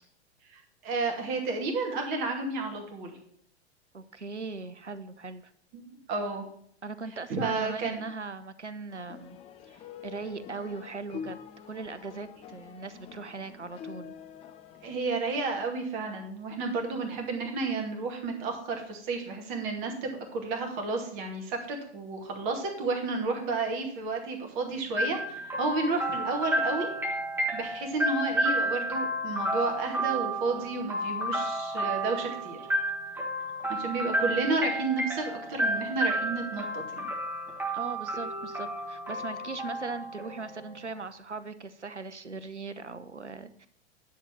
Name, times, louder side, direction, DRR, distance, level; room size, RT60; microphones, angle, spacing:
voice 1, 0.5-3.2 5.7-5.8 6.1-6.4 7.3-8.1 14.8-26.9 27.5-32.6 33.7-37.1, right 3 dB, 45° right, 2 dB, 2.4 m, -31 dB
voice 2, 3.9-5.5 6.8-9.4 9.7-11.4 11.6-14.1 37.7-43.7, right 4 dB, 90° right, 13 dB, 0.7 m, -39 dB
sound 1, 8.9-15.0, left 7 dB, 20° left, 0.5 m, -45 dB
sound 2, 25.0-40.8, right 1 dB, 5° right, 2.0 m, -31 dB
10.0 x 4.2 x 7.2 m, 0.67 s
figure-of-eight pair, 95°, 34 cm